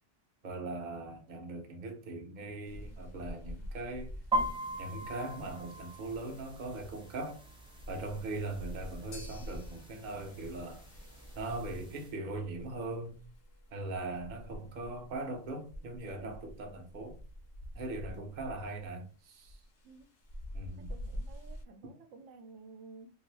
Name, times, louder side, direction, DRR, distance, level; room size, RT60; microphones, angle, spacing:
voice 1, 0.4-4.1 4.8-7.4 7.9-10.8 11.4-13.2 13.7-17.2 17.7-19.6 20.5-20.9, right 2 dB, 45° right, 0.7 m, -40 dB
sound 1, 2.6-21.7, equal, 45° left, 0.7 m, -47 dB
sound 2, 4.3-12.1, right 1 dB, 5° right, 0.6 m, -40 dB
sound 3, 9.1-17.5, left 3 dB, 60° left, 1.0 m, -60 dB
voice 2, 20.8-23.1, right 4 dB, 80° right, 0.9 m, -53 dB
2.6 x 2.6 x 3.1 m
omnidirectional pair, 1.3 m